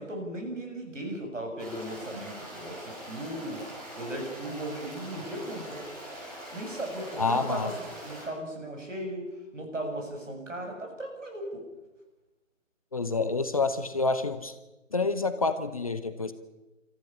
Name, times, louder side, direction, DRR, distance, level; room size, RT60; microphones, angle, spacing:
voice 1, 0.0-3.6 3.9-5.8 6.5-11.6, right 1 dB, 70° right, 3 dB, 7.4 m, -37 dB
Stream, 1.6-8.3, right 1 dB, 30° right, 6.5 m, -43 dB
voice 2, 7.2-7.7 12.9-14.5 14.9-16.3, left 3 dB, 25° left, 11 dB, 0.8 m, -28 dB
27.0 x 14.5 x 8.5 m, 1.1 s
figure-of-eight pair, 150°, 39 cm